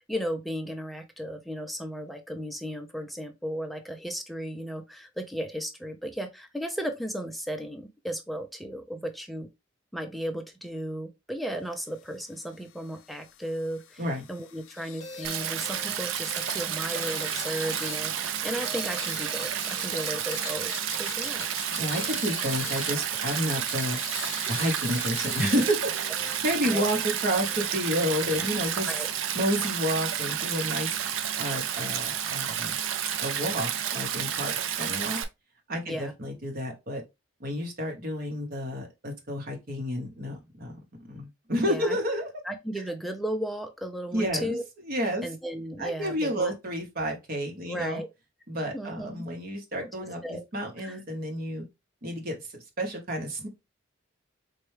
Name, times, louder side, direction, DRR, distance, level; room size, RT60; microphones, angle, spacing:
voice 1, 0.1-9.5 9.9-14.0 14.3-21.5 26.6-26.8 28.9-29.1 34.5-34.6 35.9-36.1 41.6-42.0 42.4-44.6 45.2-46.5 47.7-48.1 48.7-49.2 50.2-50.4 50.8-51.0, equal, ahead, 0.5 m, -35 dB
sound 1, 11.8-26.7, left 11 dB, 70° left, 0.4 m, -45 dB
sound 2, 15.0-29.5, equal, 35° left, 0.9 m, -47 dB
Stream, 15.2-35.2, right 9 dB, 80° right, 0.5 m, -31 dB
voice 2, 21.8-24.0 24.5-28.9 29.3-31.0 31.4-32.8 33.2-35.2 35.7-37.0 37.4-42.3 44.1-44.6 44.9-45.3 45.8-48.0 48.5-51.6 52.0-53.5, equal, 45° right, 0.9 m, -30 dB
4.3 x 2.2 x 3.2 m
head